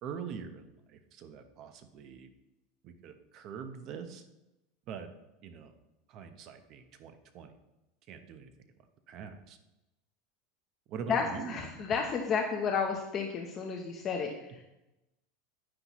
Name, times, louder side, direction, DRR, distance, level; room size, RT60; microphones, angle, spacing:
voice 1, 0.0-2.3 2.8-4.2 4.9-5.1 5.4-5.7 6.1-7.5 8.1-8.5 9.1-9.6 10.9-11.6, right 6 dB, 40° right, 9 dB, 0.9 m, -43 dB
voice 2, 11.1-14.6, left 5 dB, 30° left, 2 dB, 0.8 m, -32 dB
10.0 x 9.5 x 3.1 m, 0.96 s
supercardioid pair, 160°, 0 cm